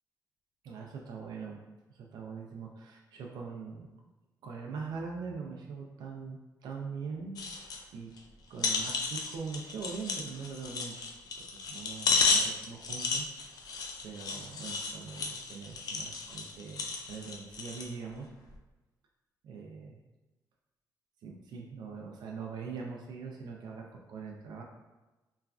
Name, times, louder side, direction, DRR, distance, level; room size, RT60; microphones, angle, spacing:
voice 1, 0.6-1.6 1.9-3.9 4.4-7.4 7.9-8.1 8.5-11.0 11.4-13.6 14.0-18.3 19.4-20.0 21.2-24.6, right 5 dB, 75° right, 0 dB, 0.4 m, -42 dB
sound 1, 7.4-7.8 8.2-8.3 8.6-17.9 18.5-18.6, left 4 dB, 65° left, 0.4 m, -33 dB
3.1 x 2.4 x 2.3 m, 1.1 s
cardioid pair, 125°, 7 cm